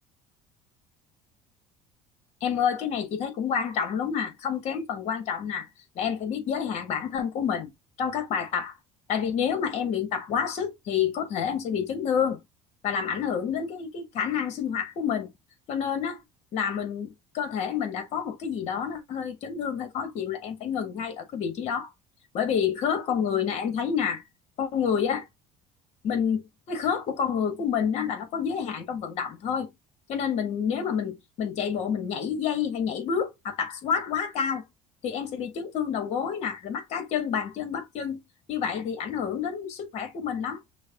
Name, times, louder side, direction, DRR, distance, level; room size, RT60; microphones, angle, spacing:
voice 1, 2.4-5.7 5.9-7.7 8.0-8.8 9.1-12.4 12.8-15.3 15.7-16.2 16.5-21.9 22.3-24.2 24.6-25.3 26.0-26.4 26.7-29.7 30.1-34.6 35.0-38.2 38.5-40.6, left 7 dB, 50° left, 1.7 m, -28 dB
6.2 x 2.3 x 2.9 m
cardioid pair, 145°, 14 cm